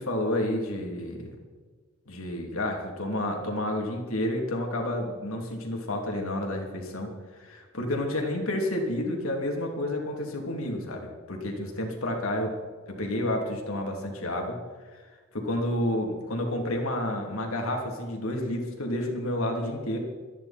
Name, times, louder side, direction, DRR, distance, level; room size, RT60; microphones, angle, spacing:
voice 1, 0.0-1.4 2.1-12.5 12.9-14.6 14.9-15.0 15.3-20.0, left 1 dB, 90° left, 1 dB, 3.0 m, -30 dB
24.0 x 10.5 x 4.4 m, 1.5 s
head